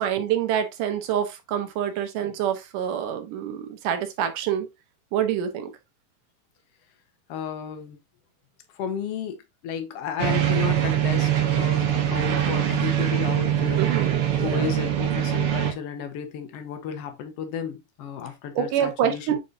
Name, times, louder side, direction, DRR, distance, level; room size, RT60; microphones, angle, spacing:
voice 1, 0.0-4.7 5.1-5.7 13.8-14.6 18.6-19.4, right 9 dB, 85° right, 2.6 m, -26 dB
voice 2, 7.3-8.0 8.7-9.4 9.6-19.4, left 8 dB, 60° left, 1.9 m, -33 dB
sound 1, 10.2-15.7, right 10 dB, 60° right, 1.6 m, -23 dB
8.2 x 4.3 x 2.7 m
omnidirectional pair, 3.6 m